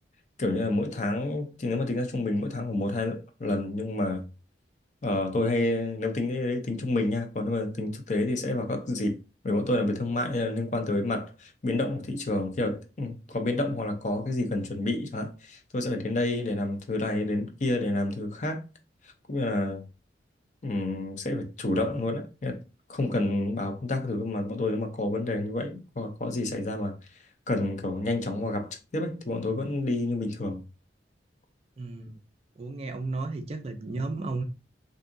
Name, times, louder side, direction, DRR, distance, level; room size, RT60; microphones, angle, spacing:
voice 1, 0.4-4.2 5.0-9.2 9.4-18.6 19.3-19.8 20.6-22.6 22.9-26.9 27.5-30.6, left 2 dB, 45° left, 0.5 m, -29 dB
voice 2, 31.8-32.1 32.6-34.4, right 3 dB, 35° right, 0.4 m, -33 dB
3.5 x 2.7 x 2.5 m
head